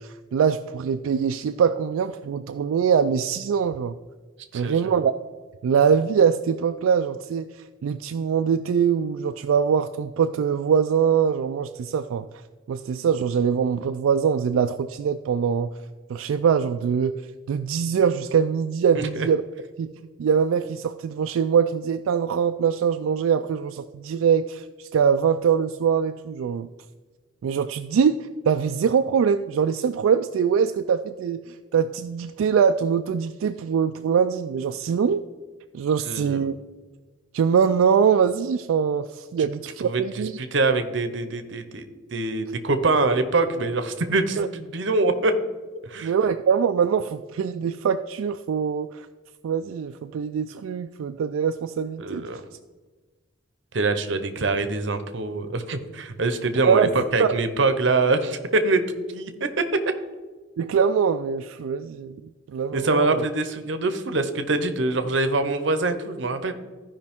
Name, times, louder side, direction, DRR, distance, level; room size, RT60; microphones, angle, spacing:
voice 1, 0.0-3.9 4.5-5.1 5.6-12.3 12.7-15.7 16.1-17.2 17.5-19.4 19.8-19.9 20.2-26.7 27.4-35.2 35.7-36.5 37.3-40.3 44.4-44.5 46.0-49.1 49.4-52.3 56.7-56.9 57.2-57.3 60.6-62.2 62.5-63.3, right 7 dB, 80° right, 7 dB, 0.3 m, -23 dB
voice 2, 4.5-4.9 18.9-19.3 36.0-36.4 39.4-39.5 39.8-41.9 42.1-45.3 45.8-46.1 52.0-52.4 53.7-59.6 62.7-66.5, right 3 dB, 60° right, 9 dB, 0.8 m, -24 dB
14.5 x 5.2 x 3.6 m, 1.3 s
head